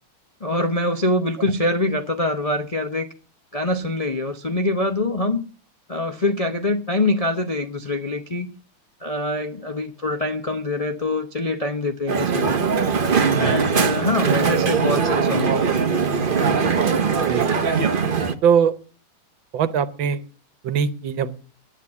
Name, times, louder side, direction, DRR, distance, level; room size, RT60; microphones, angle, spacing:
voice 1, 0.4-3.1 3.5-5.4 5.9-8.5 9.0-12.6 13.4-15.6, left 2 dB, 75° left, 0.3 m, -24 dB
Crowd, 12.1-18.3, right 5 dB, 50° right, 0.6 m, -21 dB
voice 2, 13.3-13.6 17.3-17.5 18.4-18.7 19.5-20.2 20.6-21.4, right 7 dB, 70° right, 1.7 m, -21 dB
10.5 x 10.5 x 8.2 m
omnidirectional pair, 2.3 m